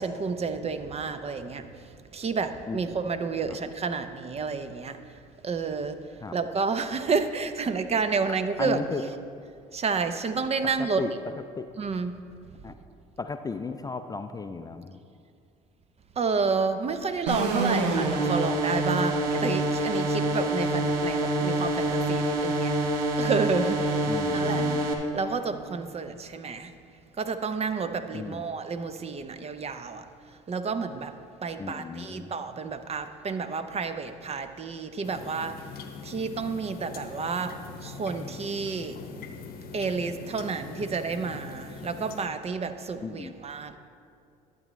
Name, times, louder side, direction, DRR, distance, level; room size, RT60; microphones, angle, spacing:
voice 1, 0.0-1.7 2.1-5.0 5.4-6.0 6.3-8.8 9.7-11.0 11.8-12.2 16.2-22.8 23.2-24.7 25.1-26.7 27.2-30.1 30.5-31.1 31.4-35.5 36.0-39.0 39.7-43.8, right 4 dB, 30° right, 10 dB, 0.6 m, -30 dB
voice 2, 8.6-9.0 10.8-11.1 11.6-11.7 12.6-12.7 13.2-15.0 24.1-24.9 28.1-28.4 31.6-32.3 43.0-43.3, left 4 dB, 20° left, 8 dB, 0.4 m, -35 dB
sound 1, 17.3-24.9, right 1 dB, 80° right, 0.9 m, -26 dB
sound 2, 35.0-42.2, left 5 dB, 45° left, 0.9 m, -42 dB
12.0 x 8.4 x 3.1 m, 2.4 s
hypercardioid pair, 65°, 21 cm